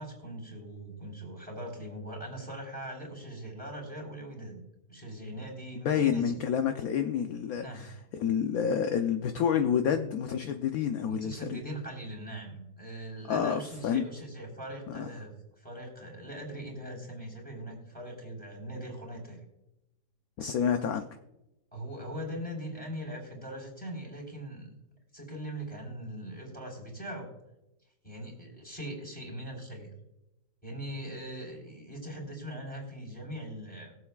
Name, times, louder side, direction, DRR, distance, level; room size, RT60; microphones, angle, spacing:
voice 1, 0.0-4.6 4.9-6.2 7.6-7.9 11.1-19.4 21.7-24.7 25.1-27.3 28.0-29.9 30.6-34.0, right 1 dB, 5° left, -1 dB, 3.8 m, -41 dB
voice 2, 5.8-11.6 13.3-14.1 14.9-15.1 20.4-21.1, left 8 dB, 65° left, 6 dB, 1.0 m, -29 dB
21.5 x 8.0 x 2.4 m, 0.91 s
omnidirectional pair, 1.8 m